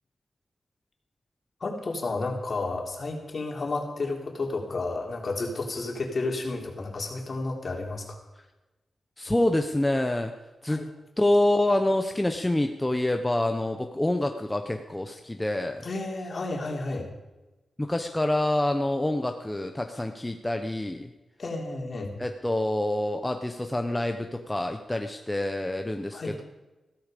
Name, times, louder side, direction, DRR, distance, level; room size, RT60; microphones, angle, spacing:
voice 1, 1.6-8.2 10.7-10.9 15.8-17.1 21.4-22.1 26.1-26.3, left 3 dB, 50° left, 1 dB, 3.5 m, -31 dB
voice 2, 9.2-10.3 10.6-10.8 11.2-15.9 17.8-21.1 22.2-26.4, left 1 dB, 15° left, 5 dB, 1.0 m, -26 dB
16.0 x 13.5 x 5.2 m, 1.1 s
wide cardioid pair, 100°, 0 cm